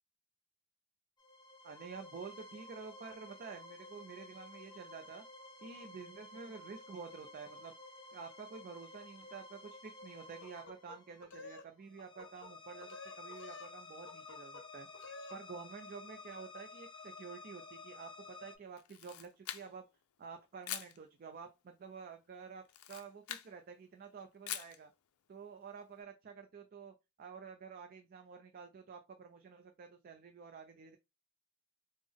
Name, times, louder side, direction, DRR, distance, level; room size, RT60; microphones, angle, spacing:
sound 1, 1.2-18.5, left 3 dB, 20° left, 0.5 m, -53 dB
voice 1, 1.6-5.2 5.6-7.8 8.1-14.9 15.3-19.9 20.2-24.9 25.3-31.0, right 5 dB, 45° right, 5 dB, 0.3 m, -50 dB
sound 2, 10.4-11.7 12.0-12.5 12.8-13.7 14.1-14.6 14.9-15.4, left 3 dB, 55° left, 0.7 m, -51 dB
Camera, 18.8-19.9 20.6-21.0 22.6-23.5 24.5-24.8, left 11 dB, 90° left, 0.4 m, -43 dB
3.4 x 2.0 x 3.4 m, 0.24 s
head